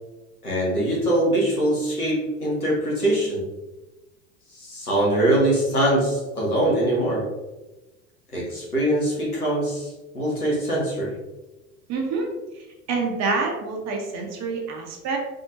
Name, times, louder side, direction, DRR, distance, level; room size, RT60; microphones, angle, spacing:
voice 1, 0.4-3.5 4.5-7.3 8.3-11.1, right 1 dB, 85° left, -5 dB, 1.5 m, -23 dB
voice 2, 11.9-12.4 12.9-15.2, right 4 dB, 35° right, 1 dB, 0.9 m, -27 dB
3.7 x 3.5 x 2.6 m, 1.1 s
figure-of-eight pair, 75°, 44 cm